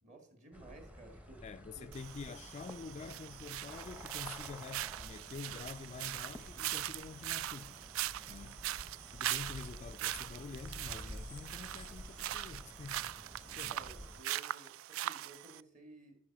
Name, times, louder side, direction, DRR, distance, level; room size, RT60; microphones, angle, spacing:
voice 1, 0.0-1.4 1.7-1.9 13.5-16.2, right 2 dB, 35° right, 2.0 m, -56 dB
sound 1, 0.5-14.2, equal, 5° right, 0.8 m, -51 dB
voice 2, 1.4-7.8 8.3-8.7 9.1-13.1 13.6-13.8, left 5 dB, 35° left, 0.3 m, -47 dB
sound 2, 1.9-15.6, right 13 dB, 80° right, 0.3 m, -41 dB
Hiss, 7.8-9.8 10.0-10.9 11.1-11.4 11.7-12.5 12.8-13.0 13.3-13.5 13.9-14.1 14.4-14.5, right 8 dB, 55° right, 0.8 m, -66 dB
13.0 x 4.8 x 5.9 m
head